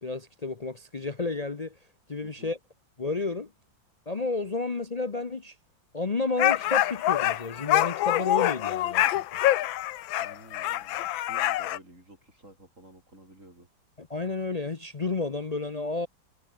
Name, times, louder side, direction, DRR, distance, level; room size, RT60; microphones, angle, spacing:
voice 1, 0.0-1.8 2.1-2.6 3.0-3.5 4.1-5.6 5.9-9.4 14.0-16.1, left 3 dB, 45° left, 0.4 m, -31 dB
voice 2, 2.2-2.5 10.2-13.7, right 1 dB, 40° right, 8.0 m, -52 dB
sound 1, 6.4-11.8, left 14 dB, 85° left, 1.6 m, -25 dB
omnidirectional pair, 2.1 m